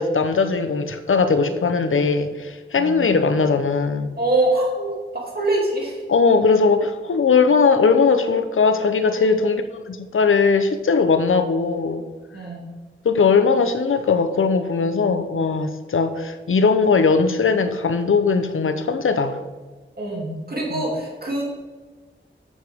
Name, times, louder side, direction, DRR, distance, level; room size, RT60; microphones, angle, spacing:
voice 1, 0.0-4.1 6.1-12.0 13.0-19.4 20.7-20.9, left 4 dB, 85° left, 9 dB, 0.7 m, -19 dB
voice 2, 2.7-3.1 4.2-5.0 5.3-6.0 9.1-9.3 12.3-12.6 20.0-21.4, right 2 dB, 50° right, -3 dB, 2.8 m, -24 dB
9.3 x 8.0 x 3.6 m, 1.3 s
wide cardioid pair, 75°, 20 cm